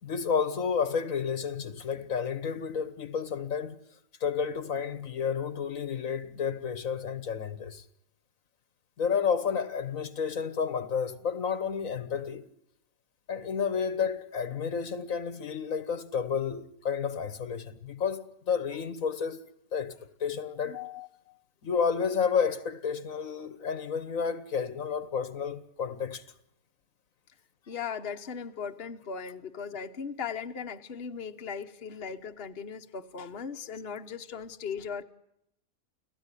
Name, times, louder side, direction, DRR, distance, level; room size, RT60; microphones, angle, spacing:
voice 1, 0.0-3.8 4.2-7.8 9.0-12.4 13.3-20.8 21.6-26.2, left 6 dB, 65° left, 1.6 m, -31 dB
voice 2, 20.7-21.3 27.6-35.0, left 6 dB, 45° left, 1.3 m, -38 dB
30.0 x 17.5 x 9.9 m
omnidirectional pair, 1.6 m